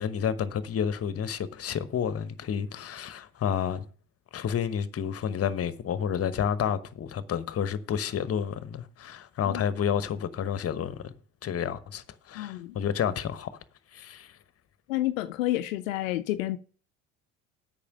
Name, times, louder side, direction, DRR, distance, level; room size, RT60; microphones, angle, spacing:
voice 1, 0.0-3.8 4.3-11.1 11.4-13.5 13.9-14.4, left 8 dB, 35° left, 1.0 m, -30 dB
voice 2, 12.4-12.8 14.9-16.6, left 15 dB, 75° left, 0.6 m, -29 dB
8.5 x 5.7 x 7.3 m
hypercardioid pair, 60°, 40 cm